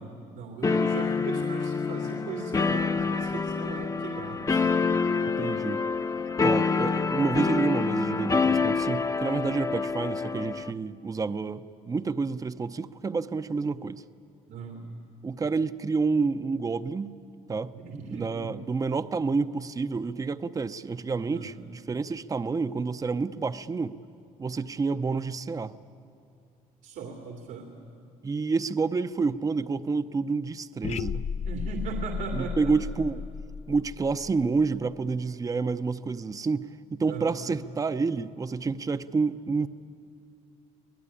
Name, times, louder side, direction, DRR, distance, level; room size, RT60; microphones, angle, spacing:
voice 1, 0.0-4.9 14.5-14.9 17.7-18.6 21.3-21.5 26.8-27.7 31.4-32.7 37.0-37.4, right 5 dB, 85° right, 2 dB, 2.7 m, -38 dB
sound 1, 0.6-10.7, left 4 dB, 20° left, 0.8 m, -27 dB
voice 2, 5.2-5.8 6.4-14.0 15.2-17.1 17.5-23.9 24.4-25.8 28.2-31.2 32.3-33.2 33.7-39.7, right 4 dB, 20° right, 12 dB, 0.7 m, -29 dB
sound 2, 30.8-34.9, left 6 dB, 45° left, 0.6 m, -34 dB
26.0 x 19.0 x 10.0 m, 2.5 s
cardioid pair, 95°, 16 cm